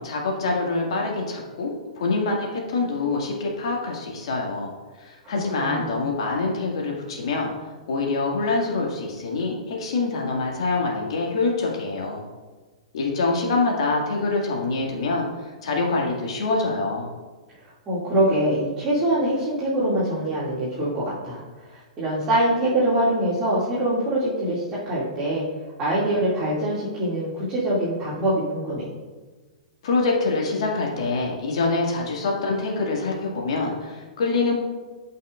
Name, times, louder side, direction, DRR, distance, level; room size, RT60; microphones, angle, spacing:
voice 1, 0.0-4.7 5.0-7.5 7.9-12.2 12.9-17.1 29.8-34.5, left 3 dB, 55° left, -1 dB, 2.1 m, -25 dB
voice 2, 5.5-6.0 17.6-25.4 25.8-28.8, right 1 dB, 25° right, -10 dB, 2.5 m, -24 dB
13.5 x 5.7 x 2.5 m, 1.3 s
figure-of-eight pair, 110°, 4 cm